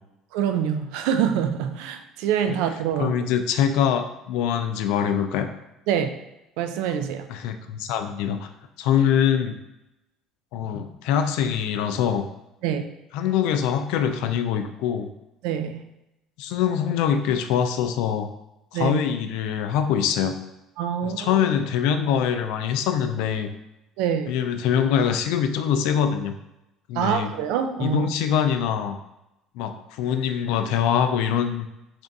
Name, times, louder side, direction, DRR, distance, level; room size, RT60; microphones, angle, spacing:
voice 1, 0.3-3.3 5.9-6.1 6.6-7.3 12.6-12.8 15.4-15.8 18.7-19.0 20.8-21.4 24.0-24.3 26.9-28.1, right 8 dB, 90° right, 8 dB, 0.3 m, -25 dB
voice 2, 3.0-5.5 7.3-8.5 8.8-9.6 10.5-12.2 13.1-15.1 16.4-18.3 18.7-20.4 21.0-23.5 24.3-26.3 26.9-27.3 27.8-29.0 29.6-31.7, left 8 dB, 80° left, 8 dB, 0.3 m, -23 dB
3.4 x 2.5 x 3.9 m, 0.92 s
cardioid pair, 155°, 0 cm